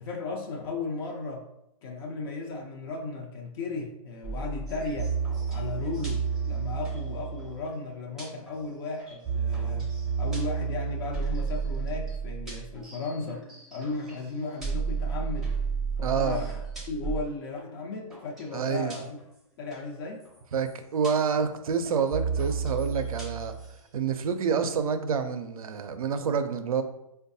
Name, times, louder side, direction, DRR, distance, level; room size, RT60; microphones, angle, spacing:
voice 1, 0.0-1.4 1.8-5.1 5.5-9.9 10.2-13.4 13.7-15.6 16.0-16.6 16.9-19.2 19.6-20.2, left 3 dB, 40° left, 0 dB, 0.6 m, -35 dB
sound 1, 4.2-7.7 8.2-8.7 9.0-14.2 14.6-17.3 17.6-17.8 18.1-18.4 18.9-19.2 19.7-19.9 20.3-20.4 20.5-20.7 21.0-21.5 21.9-23.8, right 6 dB, 5° right, 0.6 m, -32 dB
voice 2, 16.0-16.4 18.5-18.9 20.5-23.5 23.9-26.8, right 6 dB, 80° right, 8 dB, 0.5 m, -28 dB
4.5 x 2.2 x 2.6 m, 0.83 s
hypercardioid pair, 135°, 18 cm